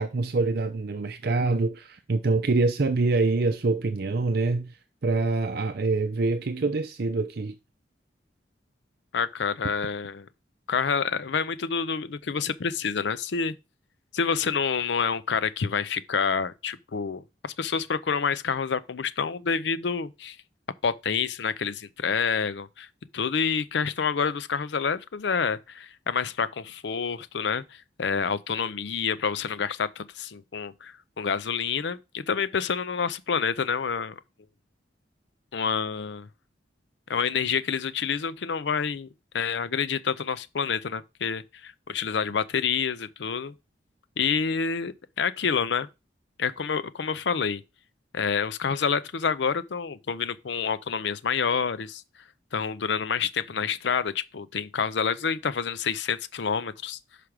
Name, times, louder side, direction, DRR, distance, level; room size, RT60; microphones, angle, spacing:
voice 1, 0.0-4.8 5.0-7.6, right 3 dB, 60° right, 0.6 m, -25 dB
voice 2, 9.1-10.3 10.7-13.5 14.1-20.4 20.8-22.9 23.1-27.6 28.0-34.1 35.5-36.3 37.1-39.1 39.3-43.5 44.2-45.9 46.4-47.6 48.1-52.0 52.5-57.0, left 6 dB, 70° left, 0.5 m, -28 dB
6.0 x 5.0 x 4.9 m
head